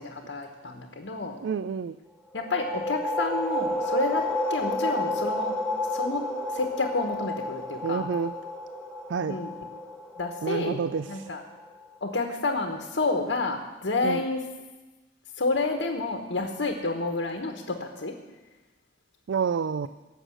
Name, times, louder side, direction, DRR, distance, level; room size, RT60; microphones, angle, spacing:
voice 1, 0.0-1.4 2.3-4.2 4.5-5.6 5.9-6.3 6.5-8.1 9.3-9.5 10.2-10.8 11.1-11.4 12.0-14.4 15.4-18.1, left 3 dB, 80° left, 3 dB, 1.3 m, -29 dB
voice 2, 1.4-2.0 7.8-8.3 9.1-9.4 10.4-11.3 14.0-14.2 19.3-19.9, right 6 dB, 80° right, 14 dB, 0.4 m, -28 dB
sound 1, 2.3-11.8, left 1 dB, 5° left, 1.2 m, -31 dB
17.0 x 6.6 x 7.8 m, 1.2 s
head